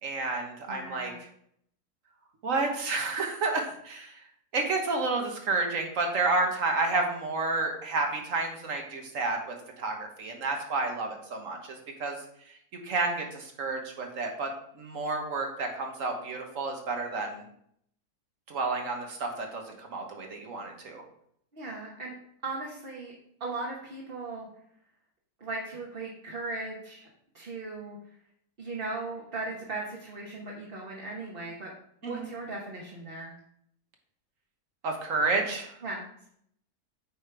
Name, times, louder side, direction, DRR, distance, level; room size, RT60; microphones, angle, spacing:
voice 1, 0.0-1.1 2.4-4.2 4.5-9.4 9.8-12.2 12.7-14.5 14.8-17.4 18.5-21.0 32.0-32.3 34.8-35.7, right 3 dB, 60° right, 2 dB, 1.5 m, -30 dB
voice 2, 0.7-1.2 21.5-22.2 22.4-23.1 23.4-24.5 25.4-27.1 27.3-28.0 28.6-31.7 32.0-33.4 35.8-36.1, right 3 dB, 40° right, -4 dB, 1.3 m, -37 dB
8.7 x 5.1 x 3.4 m, 0.68 s
omnidirectional pair, 1.6 m